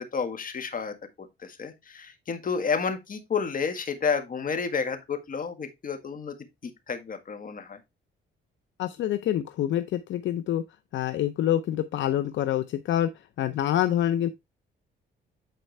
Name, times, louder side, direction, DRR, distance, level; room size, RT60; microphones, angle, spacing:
voice 1, 0.1-0.9 1.4-6.4 6.6-7.8, left 5 dB, 45° left, 1.7 m, -30 dB
voice 2, 8.8-10.6 10.9-13.1 13.4-14.3, left 11 dB, 70° left, 0.6 m, -26 dB
9.2 x 4.4 x 3.3 m
cardioid pair, 90°, 20 cm